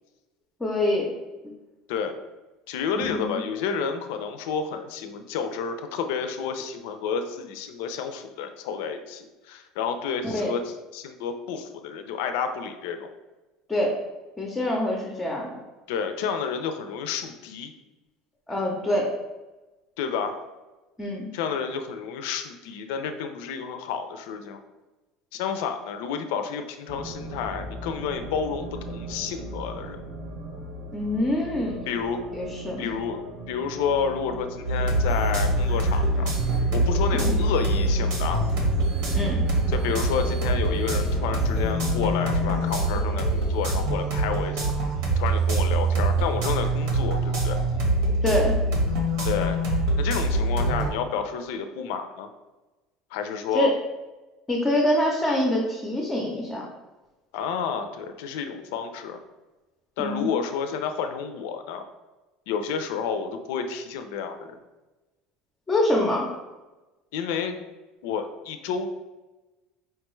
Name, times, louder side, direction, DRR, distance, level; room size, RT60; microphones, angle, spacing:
voice 1, 0.6-1.1 3.0-3.4 10.2-10.5 13.7-13.9 14.4-15.6 18.5-19.1 21.0-21.3 30.9-31.8 32.3-32.8 37.2-37.4 39.1-39.4 48.2-48.5 53.5-53.7 54.5-56.7 60.0-60.3 65.7-66.3, left 1 dB, 15° left, -2 dB, 0.5 m, -25 dB
voice 2, 2.7-13.1 15.9-17.7 20.0-20.4 21.3-24.6 25.3-30.0 31.9-32.2 32.8-33.2 33.5-36.3 36.7-38.5 39.7-44.7 45.2-47.6 49.2-49.6 50.0-52.3 53.1-53.7 57.3-59.2 60.0-61.8 62.5-64.5 67.1-67.6 68.0-68.9, left 6 dB, 80° left, 7 dB, 0.4 m, -30 dB
sound 1, 26.9-42.7, right 1 dB, 55° right, 0.5 m, -38 dB
sound 2, 34.7-50.9, right 1 dB, 75° right, 1.0 m, -24 dB
sound 3, 35.1-43.7, right 6 dB, 90° right, 1.5 m, -39 dB
4.5 x 2.3 x 3.0 m, 1.1 s
cardioid pair, 145°, 0 cm